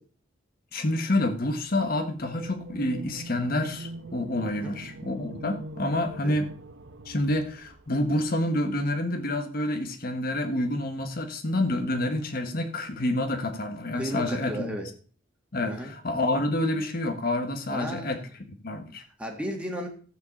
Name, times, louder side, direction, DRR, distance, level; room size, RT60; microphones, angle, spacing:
voice 1, 0.7-6.5 7.0-14.8 15.5-18.2 18.5-19.0, left 1 dB, 50° left, 1.3 m, -28 dB
sound 1, 2.2-8.2, right 2 dB, 70° right, 1.1 m, -42 dB
voice 2, 13.9-14.9 15.7-15.9 17.7-18.3 19.2-19.9, right 1 dB, 5° right, 2.0 m, -34 dB
14.0 x 4.9 x 7.1 m
head